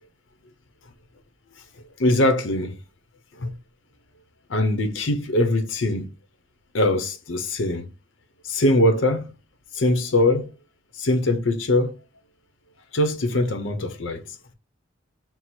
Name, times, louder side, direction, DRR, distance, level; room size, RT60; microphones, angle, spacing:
voice 1, 2.0-2.8 3.4-3.5 4.5-6.1 6.7-7.9 8.4-9.3 9.7-10.5 11.0-11.9 12.9-14.2, left 1 dB, 70° left, 0.7 m, -22 dB
4.5 x 2.0 x 4.3 m
head